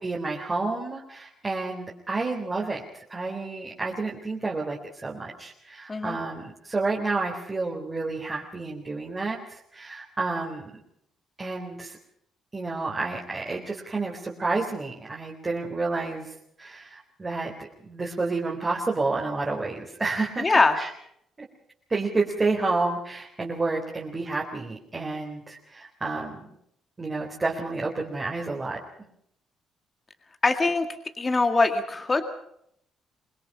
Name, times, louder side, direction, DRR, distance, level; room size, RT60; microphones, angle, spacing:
voice 1, 0.0-10.7 11.4-12.0 12.5-17.5 17.8-20.5 20.8-20.9 21.9-26.4 27.0-29.1, right 3 dB, 25° right, -2 dB, 3.9 m, -30 dB
voice 2, 20.4-20.8 30.4-30.9 31.2-32.3, left 3 dB, 25° left, 7 dB, 2.0 m, -22 dB
25.0 x 20.5 x 5.6 m, 0.72 s
cardioid pair, 90°, 0 cm